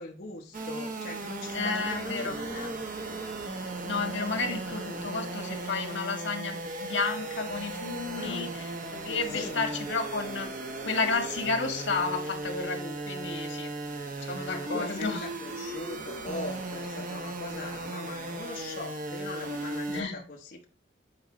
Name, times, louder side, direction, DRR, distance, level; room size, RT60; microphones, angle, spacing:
voice 1, 0.0-2.8 4.9-5.3 8.1-8.5 9.3-9.6 14.4-20.6, left 2 dB, 50° left, 0 dB, 0.9 m, -41 dB
sound 1, 0.5-20.0, right 2 dB, 45° right, 1.0 m, -36 dB
voice 2, 1.5-2.3 3.8-8.5 8.9-10.5 10.8-13.7 14.2-15.2 19.9-20.2, left 4 dB, 80° left, 4 dB, 1.7 m, -32 dB
8.8 x 4.6 x 3.0 m, 0.43 s
head